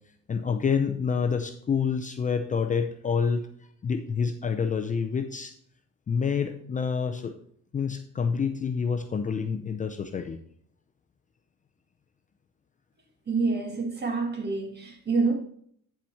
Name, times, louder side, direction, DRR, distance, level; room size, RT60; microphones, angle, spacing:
voice 1, 0.3-3.5 3.8-5.5 6.1-7.3 7.7-10.4, left 6 dB, 25° left, 0.6 m, -27 dB
voice 2, 13.3-15.3, right 4 dB, 35° right, 1.8 m, -27 dB
9.1 x 7.4 x 4.3 m
cardioid pair, 150°, 30 cm